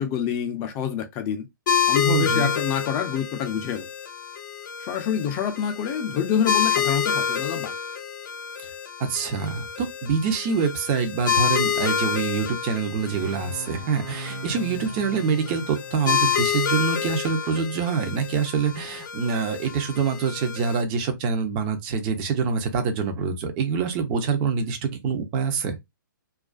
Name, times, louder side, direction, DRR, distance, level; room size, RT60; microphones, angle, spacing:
voice 1, 0.0-1.5 1.9-3.9 4.8-7.7, left 8 dB, 25° left, 0.4 m, -27 dB
sound 1, 1.7-20.8, left 8 dB, 60° left, 0.8 m, -28 dB
voice 2, 2.1-2.5 9.0-25.8, right 5 dB, 30° right, 0.6 m, -25 dB
sound 2, 13.1-16.7, right 2 dB, 70° right, 0.7 m, -40 dB
2.4 x 2.3 x 2.3 m
hypercardioid pair, 140°, 11 cm